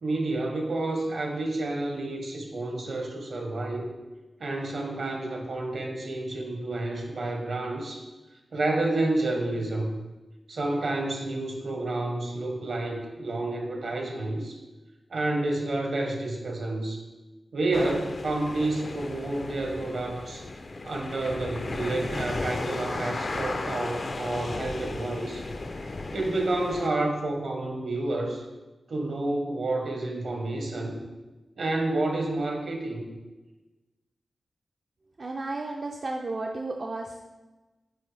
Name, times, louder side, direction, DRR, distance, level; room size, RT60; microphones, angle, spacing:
voice 1, 0.0-3.9 4.4-8.1 8.5-10.0 10.5-14.6 15.1-17.0 17.5-20.4 20.8-25.4 25.8-28.4 28.9-31.0 31.6-33.0, right 2 dB, 70° right, 2 dB, 1.2 m, -29 dB
sound 1, 17.7-26.9, left 2 dB, 50° left, 0.5 m, -35 dB
voice 2, 35.2-37.2, right 2 dB, 50° right, 1 dB, 0.4 m, -33 dB
8.3 x 3.8 x 3.4 m, 1.1 s
wide cardioid pair, 85°, 0 cm